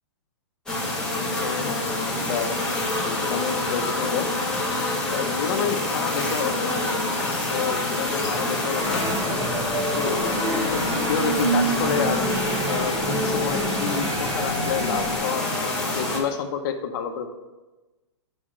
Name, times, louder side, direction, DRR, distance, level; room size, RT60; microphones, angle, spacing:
sound 1, 0.7-16.2, left 2 dB, 5° left, 1.3 m, -26 dB
Chirp tweet, 1.3-11.9, left 3 dB, 30° left, 1.2 m, -44 dB
voice 1, 1.4-2.5 3.0-4.3 5.1-6.7 7.5-9.0 9.8-10.4 10.6-12.2 12.7-17.3, left 7 dB, 45° left, 5 dB, 0.9 m, -29 dB
sound 2, 8.8-15.2, right 2 dB, 30° right, 2.3 m, -28 dB
6.9 x 4.3 x 6.2 m, 1.1 s
hypercardioid pair, 150°, 15 cm